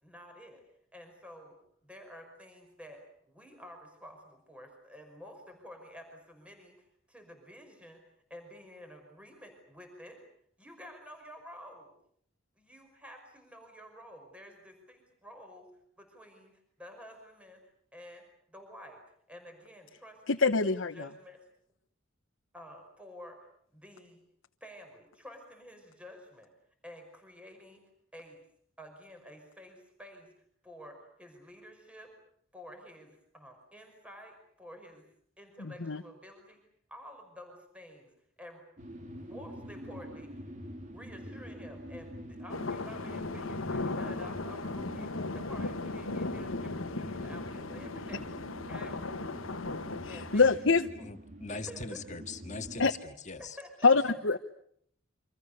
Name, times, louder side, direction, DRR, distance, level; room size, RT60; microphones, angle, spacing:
voice 1, 0.0-8.0 8.3-10.2 10.6-11.9 12.6-15.7 16.0-17.6 17.9-19.0 19.3-21.4 22.5-23.4 23.7-24.2 24.6-26.5 26.8-28.4 28.8-30.3 30.6-32.1 32.5-35.1 35.4-36.6 36.9-38.1 38.4-38.6 39.1-40.4 40.9-48.3 48.7-49.0 50.1-50.4 51.0-51.1 51.5-52.0 53.4-53.9, equal, 5° right, 4 dB, 5.5 m, -51 dB
voice 2, 20.3-21.1 35.6-36.0 50.0-50.9 52.8-52.9 53.8-54.4, left 4 dB, 70° left, 5 dB, 1.1 m, -25 dB
sound 1, 38.8-52.9, equal, 40° right, 2.7 m, -46 dB
sound 2, 42.5-50.5, left 3 dB, 90° left, 1.4 m, -37 dB
voice 3, 51.1-53.6, left 4 dB, 35° left, 7 dB, 1.9 m, -41 dB
29.0 x 25.5 x 6.8 m, 0.66 s
head